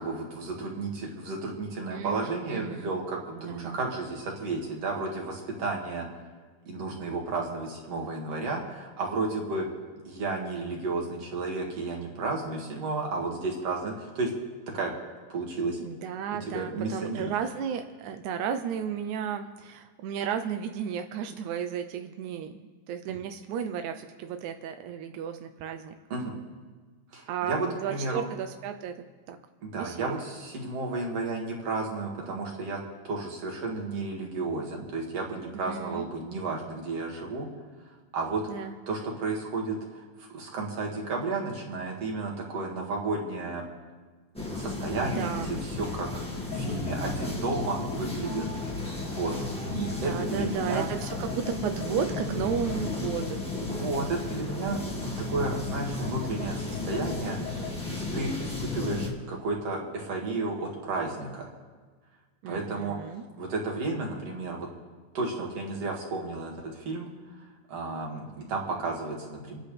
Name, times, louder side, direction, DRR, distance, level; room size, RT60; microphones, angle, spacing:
voice 1, 0.0-6.1 6.6-9.7 10.0-14.3 14.7-14.9 15.3-15.8 16.5-17.3 23.1-23.2 26.1-26.4 27.1-28.2 29.6-32.8 33.0-37.5 38.1-38.4 38.9-43.6 44.5-48.5 49.0-49.3 49.7-50.9 53.7-54.8 55.2-61.5 62.5-63.0 63.4-64.7 65.1-67.1 67.7-69.6, right 3 dB, 45° right, -1 dB, 3.0 m, -32 dB
voice 2, 1.9-3.0 3.3-3.8 15.8-25.9 27.3-29.4 29.7-30.2 35.5-36.0 38.5-38.8 44.9-45.6 49.8-53.4 62.4-63.2, right 8 dB, 80° right, 7 dB, 1.7 m, -34 dB
sound 1, 44.3-59.1, left 3 dB, 5° left, 0.8 m, -34 dB
sound 2, 46.5-57.8, left 3 dB, 60° left, 2.2 m, -42 dB
29.0 x 10.0 x 3.4 m, 1.4 s
omnidirectional pair, 4.3 m